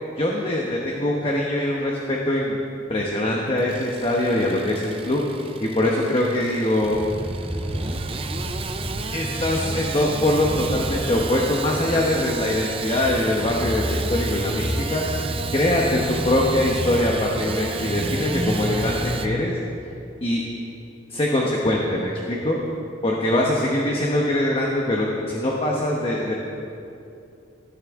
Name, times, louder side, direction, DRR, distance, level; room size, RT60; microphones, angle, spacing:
voice 1, 0.2-2.6 2.9-5.2 5.6-7.0 9.1-19.6 20.2-20.4 21.1-22.6 23.0-26.3, left 1 dB, 30° left, -2 dB, 1.1 m, -23 dB
Engine starting / Sawing, 3.5-19.3, right 5 dB, 30° right, 0.6 m, -34 dB
sound 1, 6.8-19.3, equal, 10° left, 3.2 m, -30 dB
19.0 x 10.5 x 3.7 m, 2.7 s
head